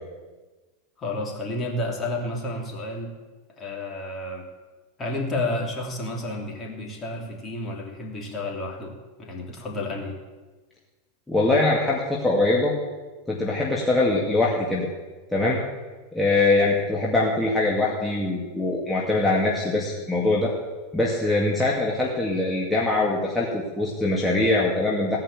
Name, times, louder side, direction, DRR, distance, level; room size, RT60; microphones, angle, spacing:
voice 1, 1.0-3.1 3.6-4.5 5.0-8.9 9.2-10.2, left 2 dB, 25° left, 0 dB, 3.1 m, -31 dB
voice 2, 11.3-12.7 13.3-14.9 15.3-15.6 16.1-20.5 20.9-25.2, left 2 dB, 10° left, -5 dB, 2.3 m, -22 dB
16.5 x 5.7 x 8.9 m, 1.3 s
hypercardioid pair, 110°, 0 cm